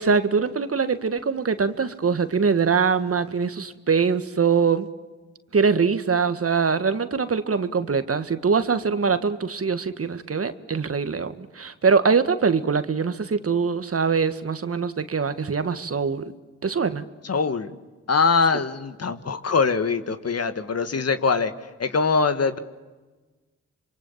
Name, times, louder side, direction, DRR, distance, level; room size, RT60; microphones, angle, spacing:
voice 1, 0.0-4.9 5.5-16.2 16.6-17.0, right 5 dB, 45° right, 10 dB, 1.7 m, -23 dB
voice 2, 17.2-17.7 18.1-21.5 21.8-22.6, left 4 dB, 50° left, 10 dB, 1.8 m, -22 dB
27.0 x 23.5 x 7.4 m, 1.2 s
supercardioid pair, 40°, 32 cm